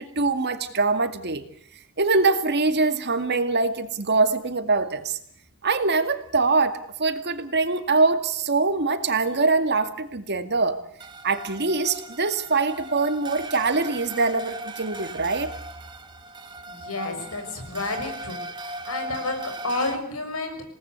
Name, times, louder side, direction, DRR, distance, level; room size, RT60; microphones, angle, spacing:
voice 1, 0.0-1.4 2.0-5.2 5.6-10.8 11.2-15.5, right 3 dB, 50° right, 9 dB, 2.2 m, -23 dB
sound 1, 11.0-20.0, right 2 dB, 20° right, 1.9 m, -38 dB
voice 2, 16.7-18.4 18.8-20.6, left 2 dB, 85° left, 5 dB, 6.5 m, -30 dB
27.5 x 19.0 x 8.2 m, 0.66 s
head